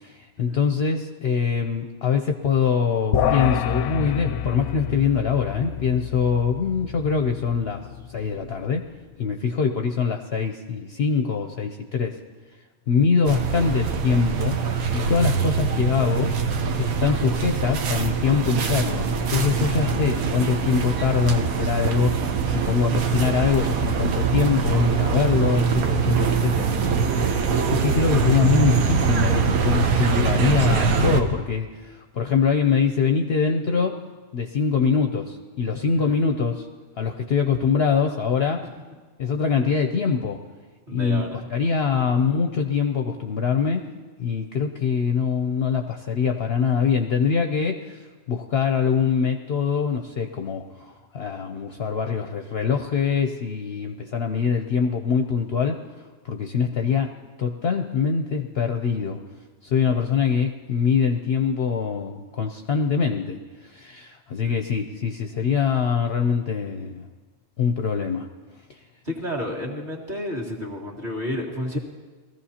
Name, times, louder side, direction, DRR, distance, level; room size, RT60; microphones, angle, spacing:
voice 1, 0.0-8.9 9.2-12.2 12.9-16.4 16.8-34.0 34.3-36.7 37.0-38.7 39.2-40.4 40.9-43.9 44.2-55.8 56.2-57.1 57.4-59.2 59.6-67.1 67.6-68.3, left 6 dB, 60° left, 5 dB, 0.7 m, -23 dB
sound 1, 3.1-8.6, left 9 dB, 90° left, 1.0 m, -28 dB
sound 2, 13.2-31.2, right 6 dB, 85° right, 1.3 m, -23 dB
voice 2, 40.9-41.4 64.4-64.6 69.0-71.8, equal, 35° right, -3 dB, 2.0 m, -31 dB
20.0 x 14.5 x 2.8 m, 1.3 s
omnidirectional pair, 1.4 m